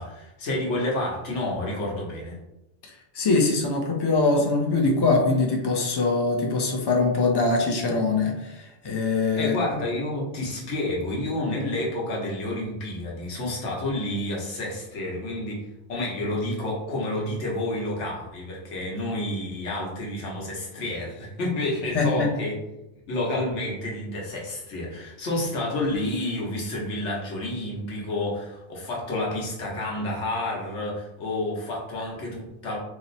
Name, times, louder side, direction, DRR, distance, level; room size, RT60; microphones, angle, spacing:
voice 1, 0.0-2.4 9.4-22.5 23.1-32.8, left 1 dB, 85° left, -3 dB, 1.2 m, -29 dB
voice 2, 3.1-9.5 21.9-22.3, left 3 dB, 45° left, 1 dB, 0.3 m, -23 dB
2.9 x 2.0 x 4.0 m, 0.94 s
omnidirectional pair, 1.2 m